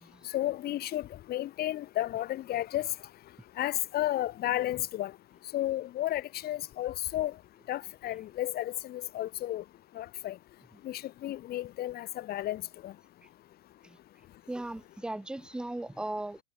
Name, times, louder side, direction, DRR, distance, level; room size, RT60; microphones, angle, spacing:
voice 1, 0.2-2.9 3.6-5.1 5.5-7.3 7.7-9.6 9.9-10.4 10.8-12.9, left 14 dB, 25° left, 1.3 m, -33 dB
voice 2, 14.5-16.4, right 1 dB, ahead, 1.3 m, -37 dB
hypercardioid pair, 135°, 38 cm